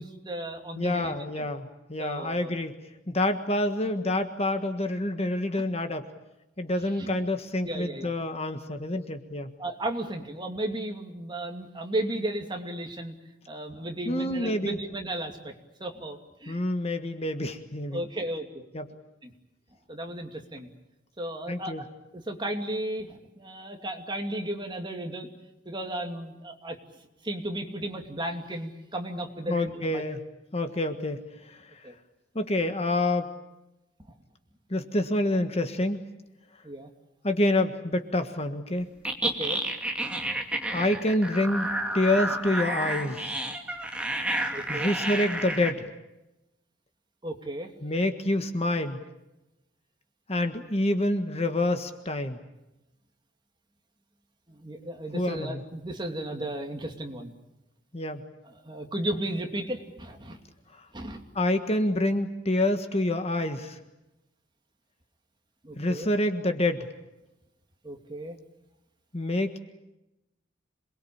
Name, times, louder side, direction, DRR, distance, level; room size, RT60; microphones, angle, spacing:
voice 1, 0.0-1.4 2.0-2.5 7.0-7.1 7.6-8.1 9.6-13.1 13.5-15.5 15.8-16.6 17.9-18.6 19.2-19.3 19.9-20.7 21.2-21.9 22.1-25.3 25.7-26.8 27.2-30.0 31.8-31.9 36.6-36.9 39.2-39.6 44.5-44.9 47.2-47.7 54.5-57.3 58.6-60.4 60.9-61.2 65.6-66.1 67.8-68.4, right 1 dB, 25° right, 3 dB, 2.7 m, -34 dB
voice 2, 0.7-2.8 3.1-6.1 6.6-9.5 14.0-14.8 16.5-18.0 18.7-18.9 21.5-21.8 29.5-30.2 30.5-31.9 32.3-33.3 34.7-36.0 37.2-38.9 40.7-41.7 41.9-43.3 44.7-45.9 47.8-49.0 50.3-52.4 55.1-55.6 57.9-58.2 60.7-60.8 61.3-63.8 65.8-66.9 69.1-69.6, left 1 dB, 30° left, 7 dB, 1.5 m, -27 dB
sound 1, 39.1-45.7, right 1 dB, 5° right, 2.6 m, -30 dB
27.5 x 21.5 x 8.7 m, 0.94 s
head